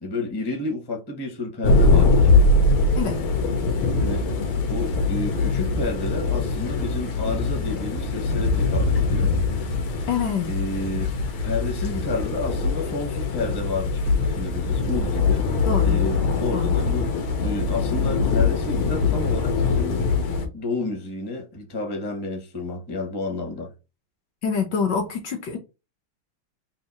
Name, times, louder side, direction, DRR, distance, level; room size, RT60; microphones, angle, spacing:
voice 1, 0.0-2.3 4.0-9.3 9.9-10.1 10.5-11.1 11.4-15.5 15.8-17.1 17.4-20.0 20.5-23.7, left 2 dB, 20° left, 0.6 m, -30 dB
sound 1, 1.6-20.5, left 3 dB, 85° left, 1.7 m, -22 dB
voice 2, 10.1-10.5 15.7-16.0 16.5-16.7 24.4-25.6, left 6 dB, 65° left, 1.3 m, -25 dB
3.8 x 2.6 x 4.1 m
omnidirectional pair, 2.3 m